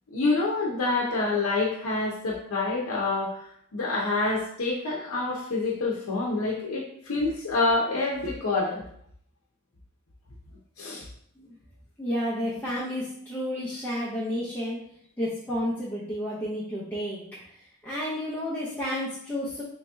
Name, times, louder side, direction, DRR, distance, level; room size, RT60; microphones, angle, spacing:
voice 1, 0.1-3.5 3.7-8.8 10.8-11.0, left 3 dB, 75° left, -4 dB, 0.7 m, -27 dB
voice 2, 12.0-14.8 15.2-19.6, equal, 10° left, -9 dB, 0.7 m, -31 dB
3.1 x 2.8 x 3.4 m, 0.67 s
head